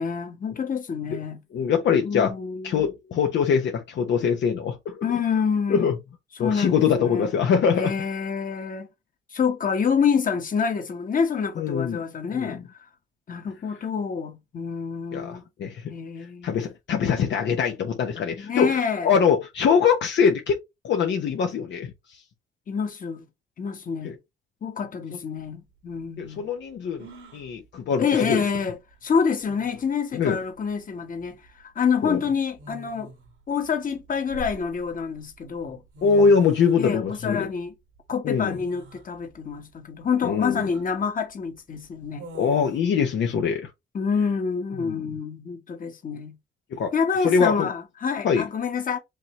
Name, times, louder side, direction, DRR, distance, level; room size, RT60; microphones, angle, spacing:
voice 1, 0.0-1.4 2.0-2.8 5.0-5.9 6.4-7.3 7.7-8.9 9.3-12.6 13.3-15.4 15.9-16.5 18.4-19.1 22.7-23.3 23.6-24.1 24.6-26.4 28.0-33.1 33.5-35.8 36.8-37.7 38.1-42.2 43.9-46.3 46.9-49.0, left 6 dB, 45° left, 1.5 m, -27 dB
voice 2, 1.5-2.3 2.6-5.0 5.7-6.0 6.4-7.9 11.6-12.0 12.3-12.6 15.1-15.9 16.4-20.6 20.8-21.9 24.0-24.1 26.2-27.1 27.3-28.4 30.1-30.4 32.0-32.2 36.0-37.5 38.2-38.6 40.2-40.7 42.3-43.7 44.8-44.9 46.7-46.9 47.2-47.7 48.2-48.4, left 6 dB, 65° left, 0.9 m, -23 dB
sound 1, 25.4-25.5 27.0-27.5 29.0-29.1 29.5-29.9 31.3-31.5 32.6-33.3 34.0-35.0 35.7-35.8 35.9-36.8 38.4-39.0 39.5-39.6 40.4-40.9 42.2-42.8, right 1 dB, 90° right, 2.1 m, -43 dB
5.3 x 2.9 x 3.1 m
cardioid pair, 90°, 20 cm